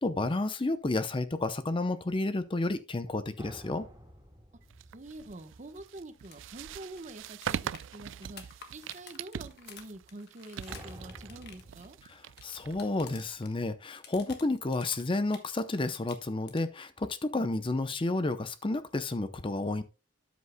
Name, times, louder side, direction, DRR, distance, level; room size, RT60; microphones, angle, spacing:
voice 1, 0.0-3.9 12.1-19.8, left 2 dB, 30° left, 0.6 m, -31 dB
sound 1, 3.4-6.4 10.7-11.7, equal, 20° right, 4.1 m, -50 dB
sound 2, 4.7-13.4, right 8 dB, 85° right, 0.4 m, -42 dB
voice 2, 4.9-12.0, right 2 dB, 40° right, 1.0 m, -46 dB
sound 3, 6.2-6.4 6.7-6.8 7.0-13.5 13.8-15.6 15.9-16.8 18.9-19.0, left 7 dB, 60° left, 1.4 m, -51 dB
13.0 x 8.2 x 2.2 m
head